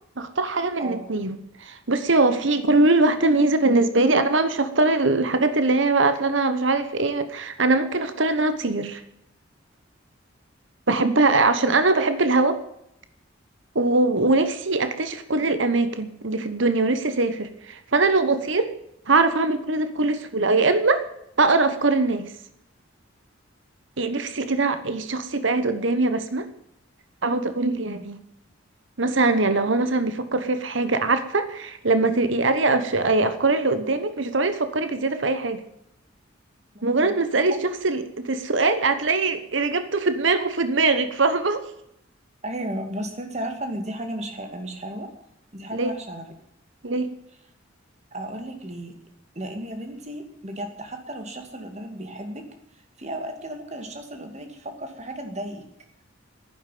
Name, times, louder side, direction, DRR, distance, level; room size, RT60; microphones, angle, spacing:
voice 1, 0.2-9.0 10.9-12.6 13.7-18.7 19.1-21.0 21.4-22.2 24.0-26.5 27.2-28.2 29.0-35.6 36.8-37.5 37.8-41.6 45.7-45.9 46.8-47.1, right 3 dB, 65° right, 10 dB, 1.1 m, -22 dB
voice 2, 36.7-37.1 37.5-37.6 42.4-45.1 45.5-46.3 48.1-48.9 49.3-52.4 53.0-55.6, right 1 dB, 35° right, 5 dB, 2.6 m, -34 dB
11.0 x 10.0 x 9.4 m, 0.78 s
head